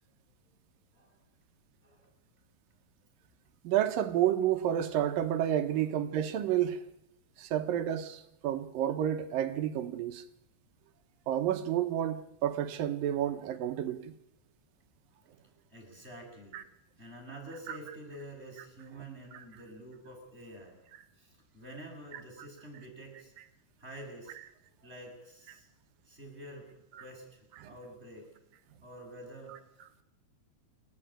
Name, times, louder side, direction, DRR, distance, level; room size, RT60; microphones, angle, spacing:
voice 1, 3.6-6.8 7.4-10.2 11.3-14.1 16.5-16.6 27.6-27.7, right 11 dB, 75° right, 2.7 m, -30 dB
voice 2, 15.7-16.6 17.0-20.8 21.1-23.3 23.8-24.4 24.8-25.7 26.0-26.7 27.0-28.3 28.8-29.6, right 1 dB, 15° right, 6.9 m, -48 dB
29.0 x 12.5 x 9.0 m
omnidirectional pair, 4.2 m